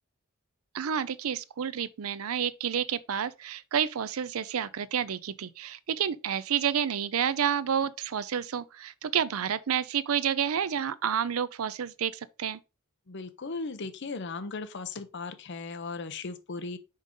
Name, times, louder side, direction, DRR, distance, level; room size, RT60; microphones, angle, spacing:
voice 1, 0.7-12.6, right 8 dB, 90° right, 0.5 m, -30 dB
voice 2, 13.1-16.8, left 4 dB, 55° left, 0.7 m, -37 dB
5.3 x 5.2 x 3.7 m
head